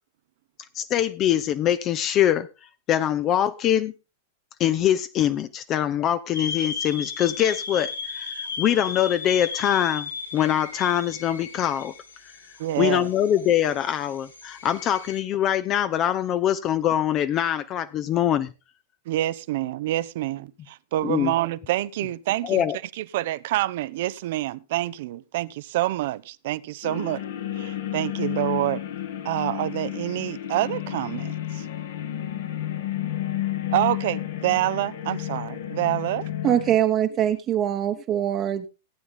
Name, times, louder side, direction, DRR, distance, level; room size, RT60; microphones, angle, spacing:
voice 1, 0.7-2.5 2.9-3.9 4.6-11.9 12.2-12.3 12.8-18.5 21.0-21.3 22.4-22.8, left 10 dB, 35° left, 0.6 m, -23 dB
sound 1, 6.3-15.2, left 5 dB, 80° left, 2.3 m, -36 dB
voice 2, 12.6-13.1 19.1-22.7 22.9-27.2 27.6-28.8 29.2-31.7 33.7-36.3, right 15 dB, 55° right, 0.6 m, -27 dB
sound 2, 26.8-36.8, left 12 dB, 60° left, 1.6 m, -31 dB
voice 3, 36.4-38.7, right 10 dB, 30° right, 1.0 m, -23 dB
15.5 x 9.3 x 3.8 m
figure-of-eight pair, 95°, 0 cm